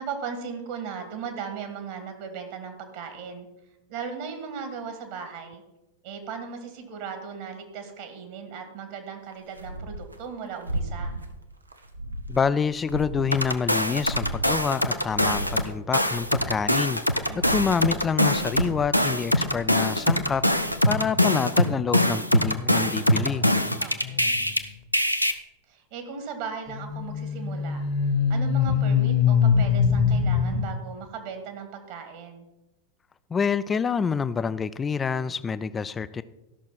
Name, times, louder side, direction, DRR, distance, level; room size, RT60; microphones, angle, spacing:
voice 1, 0.0-3.5 3.9-5.6 6.0-11.1 17.3-17.7 23.8-24.4 25.7-27.8 28.3-32.5, right 6 dB, 50° right, 5 dB, 2.0 m, -37 dB
sound 1, 9.3-10.2 10.5-11.3 11.7-13.6 13.9-15.8 16.1-21.1, right 1 dB, 80° right, 0.9 m, -36 dB
voice 2, 12.3-20.4 20.8-23.5 33.3-36.2, left 6 dB, 20° left, 16 dB, 0.4 m, -27 dB
sound 2, 13.3-15.7 15.9-24.6 24.9-25.3, left 1 dB, 90° left, 0.6 m, -23 dB
sound 3, 24.0-24.4 26.7-30.7, left 6 dB, 40° left, 1.2 m, -23 dB
13.0 x 6.2 x 5.9 m, 0.97 s
figure-of-eight pair, 90°, 0 cm